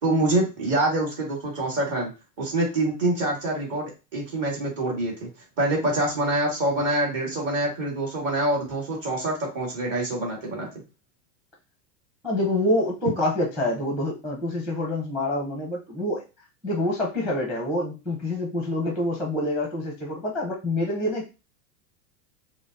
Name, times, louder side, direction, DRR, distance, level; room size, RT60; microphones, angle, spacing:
voice 1, 0.0-2.1 2.4-5.3 5.6-10.7, right 2 dB, 40° right, -3 dB, 2.0 m, -25 dB
voice 2, 12.2-16.2 16.6-21.3, left 1 dB, 5° right, 0 dB, 0.7 m, -26 dB
5.5 x 2.2 x 2.6 m, 0.29 s
supercardioid pair, 130°, 49 cm